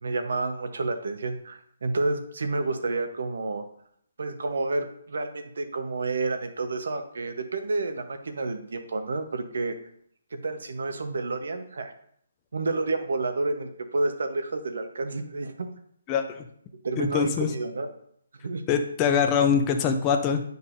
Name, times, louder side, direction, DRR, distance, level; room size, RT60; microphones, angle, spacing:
voice 1, 0.0-3.6 4.2-9.8 10.3-11.9 12.5-15.7 16.8-17.9 18.4-18.6, right 3 dB, 70° right, 7 dB, 1.0 m, -30 dB
voice 2, 16.1-16.4 17.0-17.5 18.7-20.4, left 7 dB, 20° left, 4 dB, 0.6 m, -23 dB
9.6 x 5.3 x 2.6 m, 0.66 s
hypercardioid pair, 155°, 0 cm